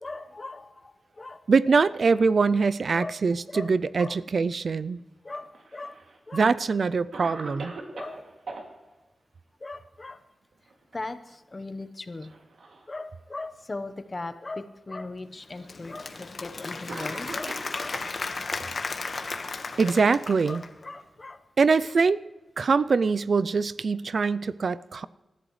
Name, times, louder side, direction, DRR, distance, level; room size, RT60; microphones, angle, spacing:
voice 1, 0.0-1.4 2.9-3.2 3.5-4.1 5.2-6.0 6.3-6.4 7.9-8.2 9.6-10.2 10.9-12.3 12.9-18.0 19.8-20.0 20.5-21.4, left 2 dB, 35° left, 9 dB, 1.0 m, -39 dB
voice 2, 1.5-5.0 6.3-7.7 19.8-20.6 21.6-22.2 22.6-25.1, right 4 dB, 60° right, 17 dB, 0.4 m, -23 dB
Cough, 5.3-6.2 6.7-6.8 7.1-8.6 10.5-10.9 11.3-11.4 12.2-12.9 13.7-13.8 14.8-14.9 16.1-16.2 16.9-18.1 19.1-20.5, right 3 dB, 85° right, 2.4 m, -42 dB
Applause / Crowd, 15.4-20.8, left 3 dB, 55° left, 1.3 m, -35 dB
28.0 x 14.0 x 3.2 m, 1.1 s
wide cardioid pair, 100°, 0 cm